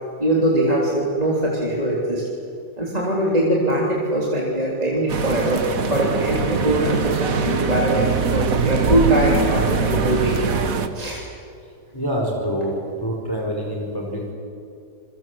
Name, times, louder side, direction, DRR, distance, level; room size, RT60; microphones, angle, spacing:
voice 1, 0.2-2.2 2.8-10.4 10.9-11.2, right 1 dB, 20° right, -4 dB, 3.6 m, -22 dB
sound 1, 5.1-10.9, right 5 dB, 55° right, 1.8 m, -22 dB
voice 2, 11.9-14.3, equal, 10° left, -1 dB, 4.6 m, -26 dB
28.5 x 23.0 x 7.9 m, 2.4 s
omnidirectional pair, 1.8 m